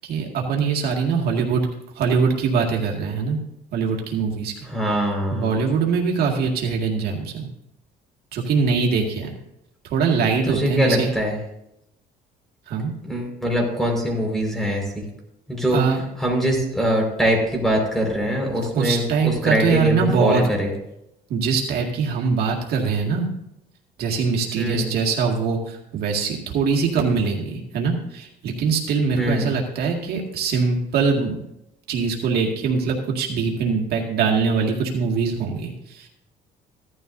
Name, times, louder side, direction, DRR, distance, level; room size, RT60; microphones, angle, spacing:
voice 1, 0.0-1.7 1.9-3.4 3.7-4.5 5.3-7.5 8.3-9.3 9.8-11.1 12.7-12.9 15.7-16.0 18.7-20.4 21.3-23.3 24.0-31.4 31.9-36.1, right 5 dB, 65° right, 0 dB, 2.0 m, -22 dB
voice 2, 4.7-5.5 10.5-11.3 13.0-15.0 15.5-15.8 16.2-20.7 24.5-24.9 29.2-29.5, equal, ahead, 0 dB, 4.9 m, -23 dB
16.0 x 13.0 x 2.7 m, 0.82 s
cardioid pair, 110°, 17 cm